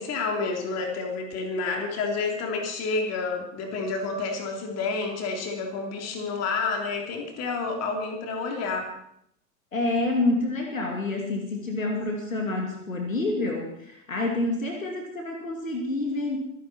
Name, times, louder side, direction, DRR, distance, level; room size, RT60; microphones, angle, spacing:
voice 1, 0.0-8.9, left 4 dB, 40° left, 3 dB, 3.6 m, -29 dB
voice 2, 9.7-16.4, left 2 dB, 80° left, 2 dB, 2.6 m, -28 dB
24.5 x 10.5 x 4.4 m, 0.73 s
figure-of-eight pair, 80°, 40 cm